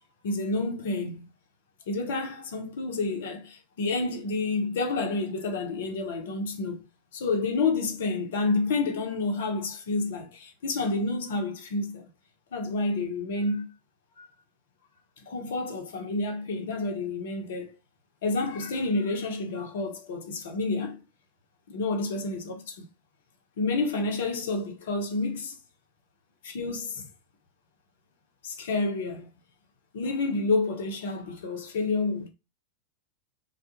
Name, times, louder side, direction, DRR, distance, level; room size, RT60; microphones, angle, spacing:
voice 1, 0.2-1.3 1.9-6.9 7.1-12.1 12.5-13.7 14.2-14.3 15.3-17.8 18.2-21.0 21.7-22.9 23.6-25.6 26.4-27.0 28.4-29.3 29.9-32.3, left 3 dB, 60° left, 0.6 m, -29 dB
2.2 x 2.0 x 2.8 m
figure-of-eight pair, 90°, 0 cm